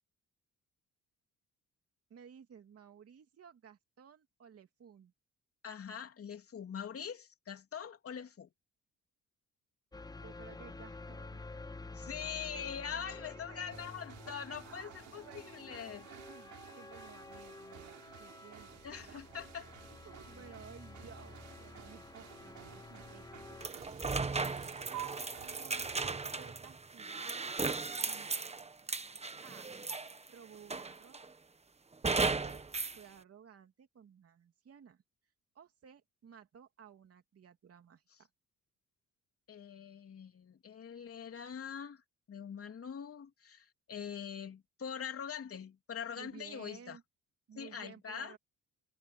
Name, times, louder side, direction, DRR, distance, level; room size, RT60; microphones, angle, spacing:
voice 1, 2.1-5.1 10.2-11.6 12.9-13.9 14.6-18.8 19.1-19.2 20.0-23.5 25.6-28.6 29.4-29.7 30.3-31.2 32.4-32.6 33.0-35.0 35.5-38.3 46.1-47.0 47.5-48.4, right 7 dB, 50° right, 3.0 m, -56 dB
voice 2, 5.6-8.5 11.9-16.1 18.8-19.7 39.5-42.0 42.3-47.0 47.6-48.4, left 7 dB, 50° left, 3.4 m, -43 dB
sound 1, 9.9-23.7, left 3 dB, 15° left, 0.9 m, -50 dB
sound 2, 13.7-26.1, right 12 dB, 75° right, 7.5 m, -52 dB
sound 3, 23.6-30.3 30.7-31.3 32.0-33.0, right 4 dB, 20° right, 1.3 m, -36 dB
cardioid pair, 90°, 30 cm